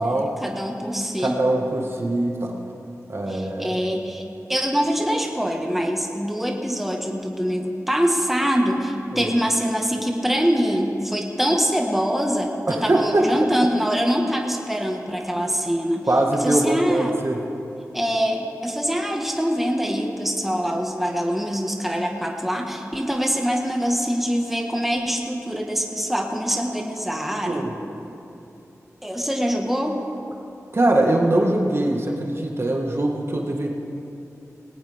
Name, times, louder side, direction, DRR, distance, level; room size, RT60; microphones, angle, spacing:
voice 1, 0.0-1.4 3.3-4.2 4.5-16.0 16.4-17.2 17.9-27.7 29.0-30.0, equal, 5° right, 1 dB, 1.6 m, -24 dB
voice 2, 1.2-2.6 3.1-3.8 9.1-9.3 12.7-13.3 16.1-17.4 27.5-27.7 30.7-33.7, right 1 dB, 45° right, 1 dB, 1.8 m, -22 dB
19.5 x 18.0 x 3.6 m, 2.8 s
wide cardioid pair, 55°, 6 cm